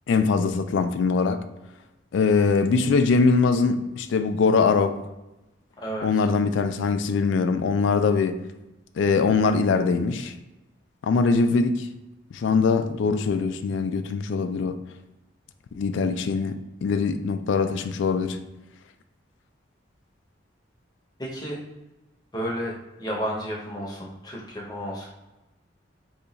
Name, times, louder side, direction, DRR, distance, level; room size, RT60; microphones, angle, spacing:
voice 1, 0.1-1.4 2.1-4.9 6.0-8.4 9.0-10.3 11.0-11.9 12.3-14.8 15.7-18.4, left 4 dB, 70° left, 0.3 m, -22 dB
voice 2, 5.8-6.3 21.2-21.6 22.3-22.7 23.0-25.1, equal, 20° left, 0.7 m, -32 dB
2.8 x 2.3 x 3.9 m
head